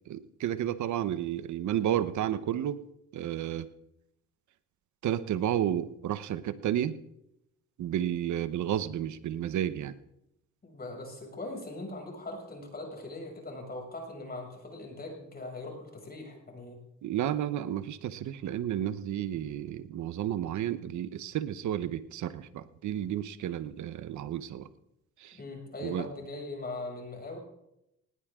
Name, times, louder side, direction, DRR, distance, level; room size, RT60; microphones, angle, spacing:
voice 1, 0.1-2.8 3.1-3.7 5.0-7.0 7.8-10.0 17.0-24.7 25.2-25.4 25.8-26.1, right 11 dB, 70° right, 13 dB, 1.1 m, -32 dB
voice 2, 10.6-16.8 25.3-27.4, left 2 dB, 30° left, 1 dB, 6.8 m, -40 dB
19.5 x 18.5 x 3.8 m, 0.82 s
cardioid pair, 90°, 30 cm